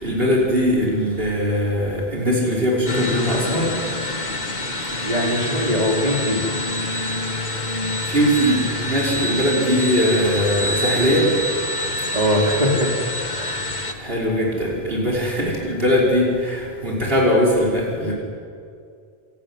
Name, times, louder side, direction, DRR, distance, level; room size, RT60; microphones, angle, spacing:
voice 1, 0.0-3.7 8.1-11.3 14.0-18.1, equal, 65° right, -3 dB, 5.9 m, -20 dB
sound 1, 2.9-13.9, left 1 dB, 45° left, 1.8 m, -26 dB
voice 2, 5.0-6.4 12.1-12.9 13.3-13.6, equal, 40° right, -1 dB, 4.2 m, -21 dB
27.5 x 14.5 x 9.8 m, 2.3 s
omnidirectional pair, 1.0 m